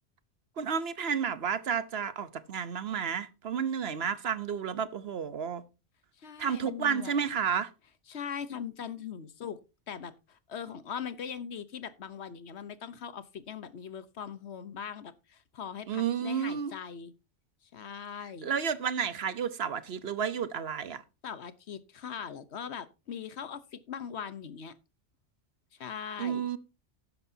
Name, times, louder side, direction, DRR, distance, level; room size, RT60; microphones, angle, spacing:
voice 1, 0.6-5.6 6.4-7.7 15.9-16.7 18.4-21.0 26.2-26.6, right 7 dB, 60° right, 1.0 m, -31 dB
voice 2, 6.2-7.2 8.1-9.6 9.9-17.1 17.6-18.5 21.2-24.7 25.8-26.5, left 7 dB, 70° left, 1.2 m, -40 dB
12.5 x 10.0 x 2.7 m
omnidirectional pair, 1.2 m